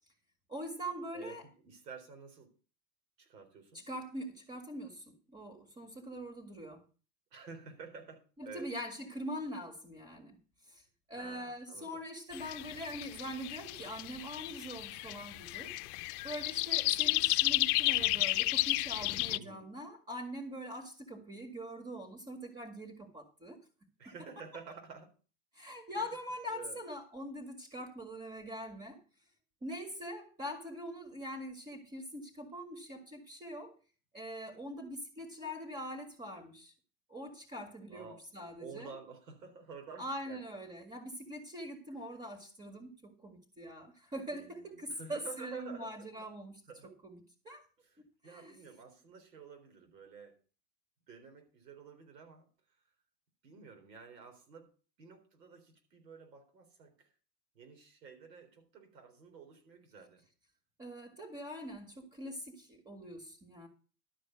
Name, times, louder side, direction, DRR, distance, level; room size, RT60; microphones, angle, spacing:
voice 1, 0.5-1.4 3.7-6.8 8.4-10.4 10.6-15.8 16.2-23.6 25.5-29.0 29.6-33.8 34.1-36.7 37.1-38.9 40.0-46.6 47.0-47.7 48.2-48.6 60.8-63.7, equal, 15° right, 2.1 m, -43 dB
voice 2, 1.6-2.5 3.2-3.8 7.3-8.7 11.1-12.0 19.3-19.7 24.0-25.1 26.0-26.1 26.5-26.8 37.9-38.2 38.6-40.4 44.2-46.3 46.7-46.9 47.8-50.3 51.1-52.5 53.4-54.7 55.0-57.1 57.5-60.2, right 5 dB, 90° right, 4.1 m, -50 dB
sound 1, 12.3-19.4, left 20 dB, 65° left, 0.7 m, -32 dB
12.5 x 5.0 x 7.8 m
hypercardioid pair, 105°, 48 cm